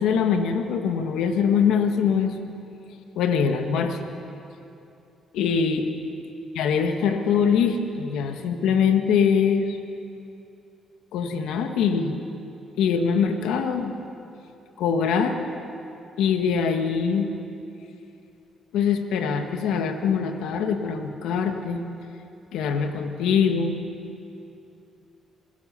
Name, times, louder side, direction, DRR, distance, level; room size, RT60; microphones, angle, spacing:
voice 1, 0.0-2.3 3.1-4.0 5.3-5.9 6.6-9.8 11.1-12.2 12.8-13.9 14.8-15.4 16.2-17.3 18.7-21.8 22.5-23.8, left 6 dB, 85° left, 6 dB, 1.6 m, -23 dB
26.5 x 16.5 x 6.9 m, 2.7 s
cardioid pair, 90°, 0 cm